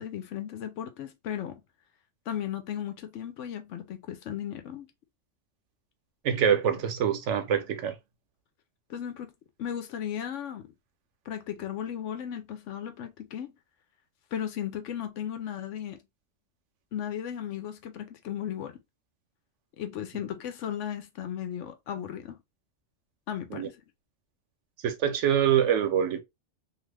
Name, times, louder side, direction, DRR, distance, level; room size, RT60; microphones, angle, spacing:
voice 1, 0.0-1.6 2.3-4.9 8.9-9.3 9.6-10.7 11.3-13.5 14.3-16.0 16.9-18.8 19.8-22.4 23.3-23.8, left 9 dB, 85° left, 1.0 m, -35 dB
voice 2, 6.2-8.0 23.5-23.7 24.8-26.2, right 8 dB, 80° right, 1.0 m, -25 dB
2.5 x 2.4 x 3.2 m
omnidirectional pair, 1.2 m